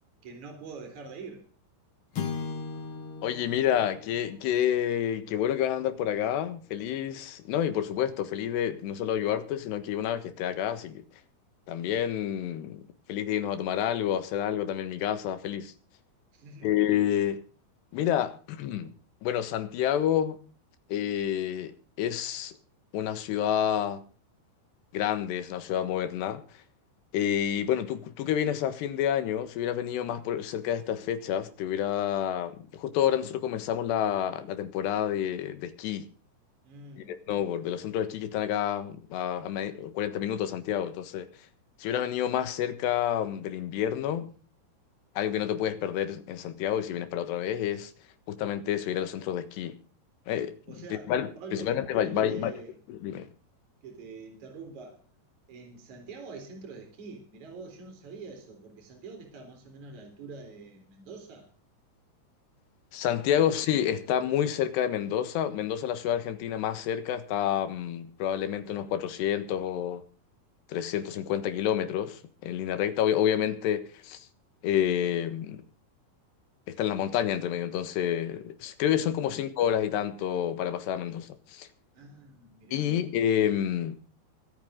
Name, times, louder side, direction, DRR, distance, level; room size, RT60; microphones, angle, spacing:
voice 1, 0.2-1.5 16.3-16.7 36.6-37.1 50.7-51.1 51.4-52.7 53.8-55.0 55.5-61.5 63.3-63.5 79.2-79.4 81.9-83.0, right 4 dB, 45° right, 5.0 m, -45 dB
sound 1, 2.1-6.6, left 5 dB, 45° left, 1.9 m, -39 dB
voice 2, 3.2-11.0 11.7-12.8 13.1-15.7 16.6-17.4 17.9-18.9 19.2-20.4 20.9-21.7 22.0-22.5 22.9-24.0 24.9-26.4 27.1-36.1 37.0-41.3 41.8-44.3 45.2-47.9 48.3-49.8 50.3-50.6 51.1-52.5 52.9-53.3 62.9-70.0 70.7-74.3 74.6-75.6 76.7-81.7 82.7-84.0, left 10 dB, 85° left, 3.6 m, -29 dB
24.5 x 9.2 x 3.7 m
omnidirectional pair, 4.7 m